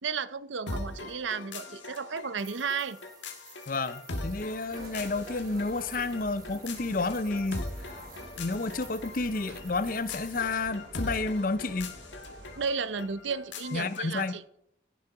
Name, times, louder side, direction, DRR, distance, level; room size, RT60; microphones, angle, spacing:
voice 1, 0.0-3.0 12.6-14.4, right 5 dB, 85° right, 0.7 m, -33 dB
sound 1, 0.7-14.4, left 2 dB, 80° left, 1.7 m, -41 dB
sound 2, 2.4-10.4, right 6 dB, 20° right, 1.7 m, -53 dB
voice 2, 3.7-7.9 8.4-11.9 13.7-14.4, left 3 dB, 45° left, 0.6 m, -31 dB
sound 3, 4.7-12.7, right 1 dB, 60° right, 3.9 m, -47 dB
16.5 x 6.8 x 4.7 m
head